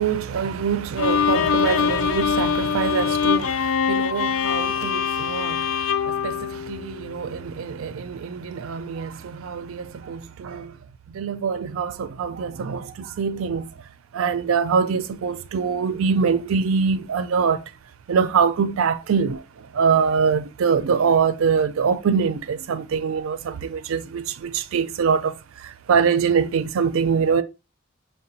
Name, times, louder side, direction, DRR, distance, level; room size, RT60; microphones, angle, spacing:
voice 1, 0.0-10.8 11.1-13.7 14.1-17.7 18.1-27.4, right 6 dB, 80° right, 0.4 m, -24 dB
Bowed string instrument, 1.0-7.2, left 7 dB, 75° left, 0.3 m, -23 dB
5.6 x 2.2 x 2.7 m
head